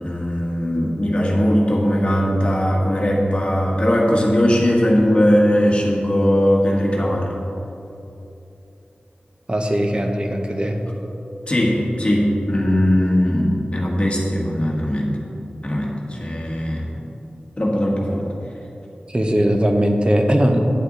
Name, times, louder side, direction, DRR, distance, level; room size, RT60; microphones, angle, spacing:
voice 1, 0.0-7.3 11.4-15.1 15.6-16.9 17.6-18.2, equal, 35° left, -2 dB, 1.6 m, -19 dB
voice 2, 9.5-10.8 19.1-20.6, equal, 30° right, 3 dB, 0.9 m, -19 dB
9.9 x 8.1 x 3.9 m, 2.9 s
wide cardioid pair, 80°, 3 cm